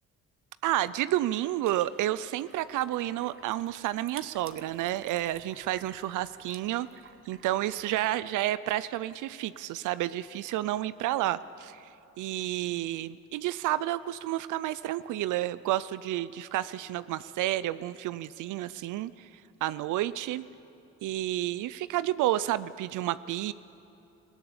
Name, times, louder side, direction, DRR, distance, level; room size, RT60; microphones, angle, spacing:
voice 1, 0.6-6.9 7.3-11.9 12.2-19.3 19.6-20.4 21.0-23.5, right 14 dB, 80° right, 16 dB, 0.5 m, -30 dB
sound 1, 1.6-8.2, right 6 dB, 45° right, 1.3 m, -53 dB
20.5 x 16.5 x 8.6 m, 2.9 s
cardioid pair, 90°, 30 cm